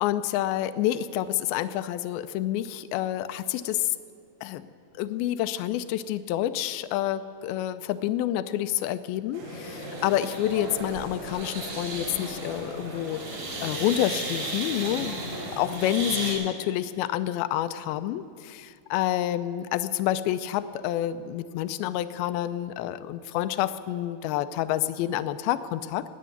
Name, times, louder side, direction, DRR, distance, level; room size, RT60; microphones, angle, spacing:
voice 1, 0.0-4.0 4.4-4.7 5.0-26.0, left 12 dB, 80° left, 12 dB, 2.4 m, -28 dB
sound 1, 9.3-16.3, right 1 dB, 60° right, 5.2 m, -34 dB
19.0 x 7.4 x 9.3 m, 2.3 s
omnidirectional pair, 4.6 m